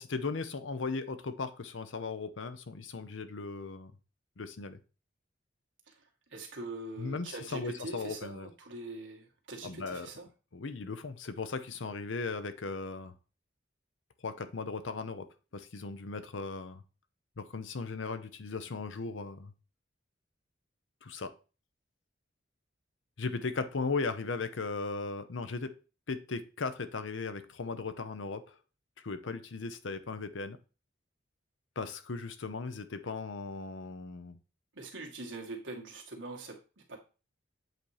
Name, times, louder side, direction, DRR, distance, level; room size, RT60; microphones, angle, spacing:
voice 1, 0.0-3.9 4.4-4.8 7.0-8.5 9.6-10.1 10.5-13.1 14.2-15.3 15.5-16.8 17.4-19.5 21.0-21.3 23.2-25.7 26.1-28.5 29.0-30.6 31.8-34.4, left 4 dB, 80° left, 0.7 m, -37 dB
voice 2, 6.3-10.3 34.7-36.6 36.9-37.0, right 2 dB, 80° right, 1.7 m, -43 dB
7.9 x 2.8 x 4.8 m
head